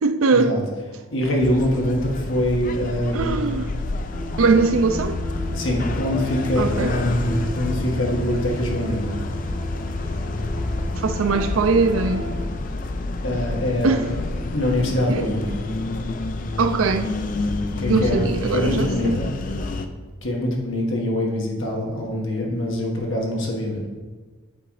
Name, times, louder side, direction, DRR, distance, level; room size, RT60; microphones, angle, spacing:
voice 1, 0.0-0.5 3.1-3.7 4.4-5.2 6.6-6.9 11.0-12.3 13.8-14.1 15.1-15.3 16.6-17.1 17.9-19.2, right 4 dB, 80° right, 0.5 m, -21 dB
voice 2, 1.1-3.5 5.5-9.1 13.2-14.0 14.5-15.5 17.8-19.3 20.2-23.8, left 1 dB, 70° left, 1.5 m, -24 dB
sound 1, 1.4-19.9, left 2 dB, 40° left, 0.4 m, -29 dB
sound 2, 4.1-12.5, left 1 dB, 15° left, 1.6 m, -32 dB
7.9 x 3.8 x 4.7 m
head